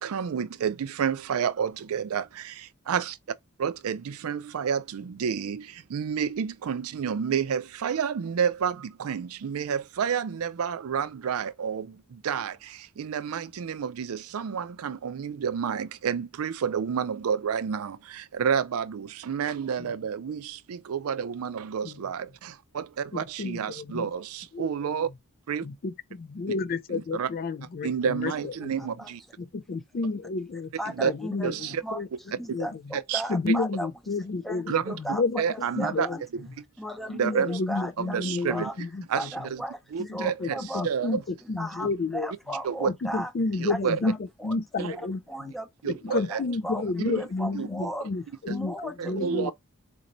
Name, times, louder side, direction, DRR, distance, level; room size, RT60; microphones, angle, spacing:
voice 1, 0.0-3.2 3.6-25.1 25.5-25.7 26.5-26.6 26.9-27.3 27.8-29.2 30.9-31.1 31.4-31.8 32.9-33.2 34.7-35.0 35.4-36.1 36.4-36.5 37.1-37.6 38.0-38.7 39.1-39.6 39.9-41.2 42.6-42.9 43.6-44.0 44.8-45.0 45.8-46.4 47.0-47.3 47.5-47.7 48.5-48.6 49.0-49.5, right 7 dB, 70° right, 0.4 m, -30 dB
voice 2, 23.1-24.1 24.5-24.7 25.6-28.9 29.4-30.7 31.0-32.1 32.5-32.8 33.3-35.4 35.8-36.2 37.1-39.4 40.0-40.5 40.7-42.3 42.9-44.2 44.4-45.5 45.9-49.5, left 3 dB, 40° left, 0.4 m, -31 dB
voice 3, 28.8-29.1 30.8-31.5 31.8-32.0 32.4-33.9 34.4-36.2 36.8-38.7 39.2-39.8 40.1-41.2 41.6-43.3 43.7-45.0 45.3-48.1 48.5-49.5, right 1 dB, ahead, 0.6 m, -36 dB
4.2 x 2.6 x 3.0 m
head